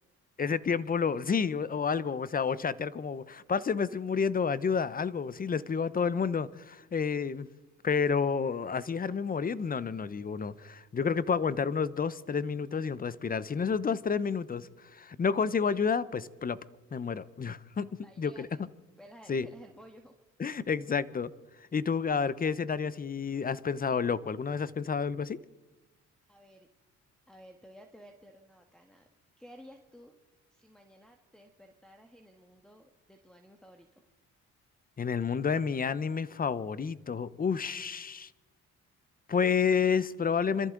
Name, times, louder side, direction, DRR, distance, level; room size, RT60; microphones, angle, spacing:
voice 1, 0.4-7.5 7.8-16.6 16.9-18.5 19.3-19.5 20.4-21.3 21.7-25.4 35.0-38.3 39.3-40.7, left 6 dB, 30° left, 0.8 m, -30 dB
voice 2, 18.0-18.7 19.0-20.1 26.3-26.7 27.3-29.1 29.4-30.1 30.5-34.1, equal, ahead, 1.5 m, -54 dB
26.5 x 14.0 x 3.9 m
cardioid pair, 90°, 30 cm